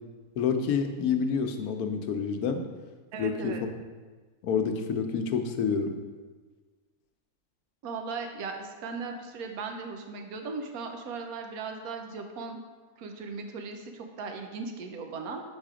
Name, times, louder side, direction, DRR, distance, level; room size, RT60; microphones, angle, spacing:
voice 1, 0.4-2.6 3.2-3.6 4.4-6.0, left 6 dB, 85° left, 6 dB, 1.1 m, -28 dB
voice 2, 3.1-3.6 7.8-12.6 13.0-15.4, right 4 dB, 80° right, 4 dB, 1.2 m, -37 dB
6.1 x 4.1 x 5.0 m, 1.4 s
omnidirectional pair, 1.5 m